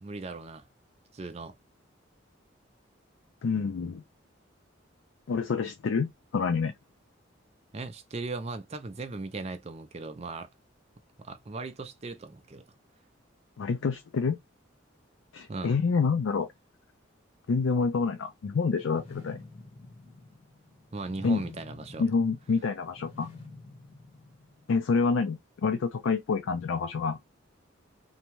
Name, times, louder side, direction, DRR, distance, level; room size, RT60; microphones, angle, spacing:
voice 1, 0.0-0.7 1.1-1.5 7.7-10.5 11.2-12.6 15.5-15.8 20.9-22.0, right 3 dB, 35° right, 0.4 m, -38 dB
voice 2, 3.4-4.0 5.3-6.7 13.6-14.4 15.3-16.5 17.5-19.4 21.2-21.4 22.0-23.3 24.7-27.2, left 5 dB, 85° left, 0.4 m, -27 dB
sound 1, 18.7-24.8, left 3 dB, 30° left, 1.0 m, -48 dB
2.7 x 2.2 x 2.9 m
head